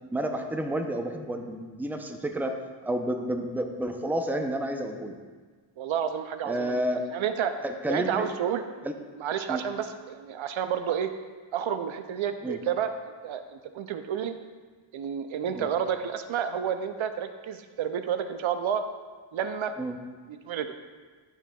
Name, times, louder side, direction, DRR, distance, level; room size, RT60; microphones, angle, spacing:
voice 1, 0.1-2.5 2.8-5.2 6.5-7.1 7.6-8.3 8.8-8.9 9.5-9.6 12.4-12.6 15.5-15.7 19.8-20.0, right 1 dB, 5° right, 4 dB, 0.6 m, -30 dB
voice 2, 5.8-6.8 7.1-7.5 7.9-8.6 9.2-11.1 11.5-14.3 14.9-18.8 19.3-19.7 20.3-20.7, right 8 dB, 75° right, 9 dB, 0.5 m, -30 dB
11.0 x 4.5 x 2.3 m, 1.5 s
cardioid pair, 60°, 49 cm